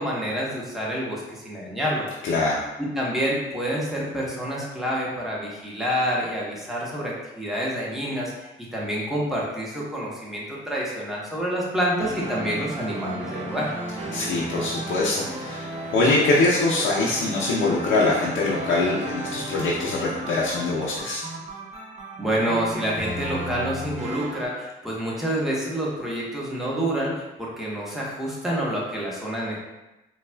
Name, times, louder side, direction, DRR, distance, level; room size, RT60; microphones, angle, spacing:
voice 1, 0.0-2.1 2.8-13.7 22.2-29.6, equal, ahead, -5 dB, 0.9 m, -28 dB
voice 2, 2.2-2.7 14.1-21.2, left 2 dB, 80° left, -5 dB, 0.6 m, -23 dB
sound 1, 12.0-24.4, right 1 dB, 35° right, 0.7 m, -34 dB
4.0 x 2.3 x 2.2 m, 0.99 s
cardioid pair, 90°, 20 cm